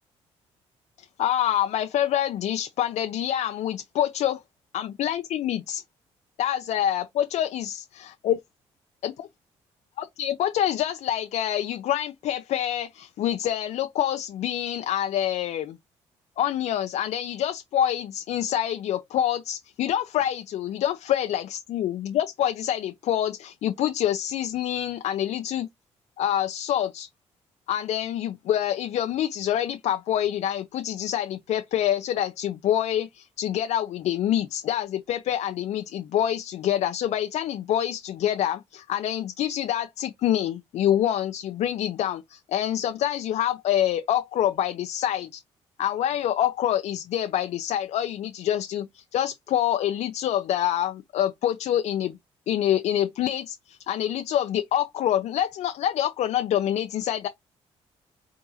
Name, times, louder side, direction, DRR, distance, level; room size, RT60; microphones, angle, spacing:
voice 1, 1.2-4.4 4.7-5.8 6.4-8.4 9.0-9.3 10.0-15.8 16.4-25.7 26.2-27.1 27.7-45.4 45.8-52.2 52.5-57.3, left 11 dB, 65° left, 0.4 m, -26 dB
3.7 x 2.7 x 2.7 m
supercardioid pair, 70°, 12 cm